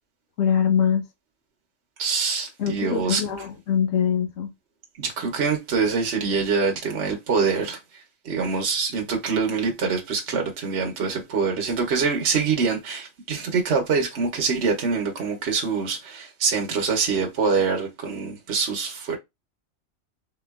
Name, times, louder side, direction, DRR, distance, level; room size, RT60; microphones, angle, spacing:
voice 1, 0.4-1.0 2.6-4.5, left 8 dB, 75° left, 1.2 m, -23 dB
voice 2, 2.0-3.2 5.0-19.2, right 5 dB, 55° right, 1.1 m, -25 dB
3.7 x 3.0 x 2.3 m
omnidirectional pair, 1.4 m